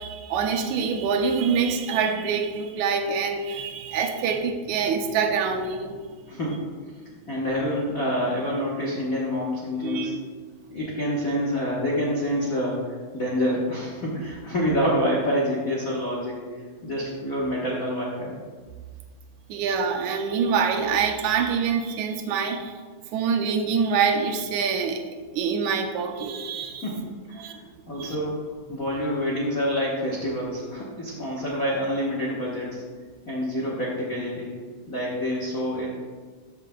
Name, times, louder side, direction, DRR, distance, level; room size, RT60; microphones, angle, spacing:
voice 1, 0.0-6.0 9.8-10.2 19.5-22.8 23.1-26.9 27.4-27.6 28.0-28.2, right 6 dB, 80° right, 4 dB, 2.0 m, -25 dB
voice 2, 6.3-6.7 7.3-10.1 10.7-18.3 26.8-27.5 27.9-32.8 33.3-34.6 34.9-35.9, equal, 90° left, -5 dB, 0.7 m, -27 dB
13.5 x 6.6 x 2.2 m, 1.5 s
omnidirectional pair, 3.5 m